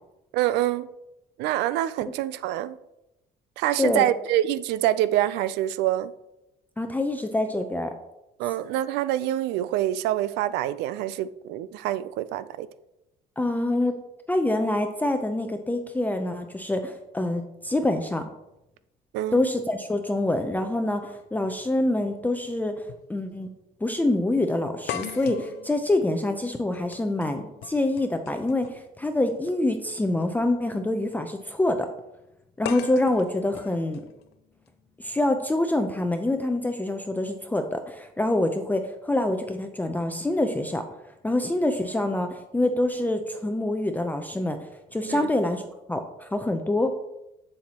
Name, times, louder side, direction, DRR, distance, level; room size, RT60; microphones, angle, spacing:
voice 1, 0.3-0.9 1.4-2.8 3.6-6.1 8.4-12.7 19.1-19.4 45.1-45.2, right 13 dB, 90° right, 16 dB, 0.4 m, -26 dB
voice 2, 6.8-7.9 13.4-14.0 14.3-18.3 19.3-23.5 23.8-31.9 32.6-34.0 35.0-40.9 41.2-45.6 45.9-46.9, left 1 dB, 10° left, 6 dB, 0.5 m, -26 dB
sound 1, 22.9-23.1 23.4-23.5 24.9-28.9 30.1-30.3 32.6-34.7, left 10 dB, 75° left, 0.5 m, -39 dB
7.8 x 7.2 x 2.9 m, 0.90 s
cardioid pair, 110°, 17 cm